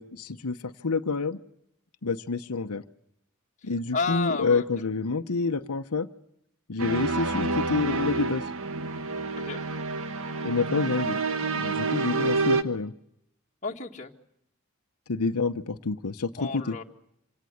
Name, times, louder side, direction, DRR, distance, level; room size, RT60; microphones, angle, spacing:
voice 1, 0.0-1.4 2.0-2.8 3.6-6.1 6.7-8.4 10.4-11.2 11.6-12.9 15.1-16.8, left 4 dB, 90° left, 7 dB, 0.9 m, -28 dB
voice 2, 3.9-4.6 9.5-9.6 13.6-14.1 16.4-16.8, left 4 dB, 35° left, 2 dB, 1.9 m, -31 dB
sound 1, 6.8-12.6, right 3 dB, 60° right, 1.3 m, -28 dB
27.0 x 18.0 x 7.9 m, 0.78 s
head